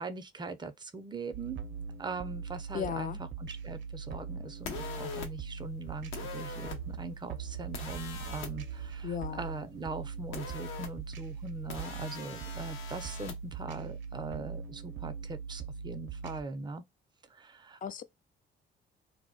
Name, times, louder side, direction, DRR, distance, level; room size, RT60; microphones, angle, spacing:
voice 1, 0.0-1.6 2.0-16.8 17.3-17.8, right 3 dB, 20° right, 0.5 m, -41 dB
sound 1, 1.3-16.4, right 6 dB, 70° right, 0.5 m, -41 dB
voice 2, 2.7-3.2 9.0-9.5 17.8-18.0, left 8 dB, 45° left, 0.4 m, -35 dB
sound 2, 4.6-5.3 6.1-6.8 7.7-8.5 10.3-10.9 11.7-13.3, left 6 dB, 85° left, 0.7 m, -42 dB
2.1 x 2.0 x 3.7 m
cardioid pair, 90°, 20 cm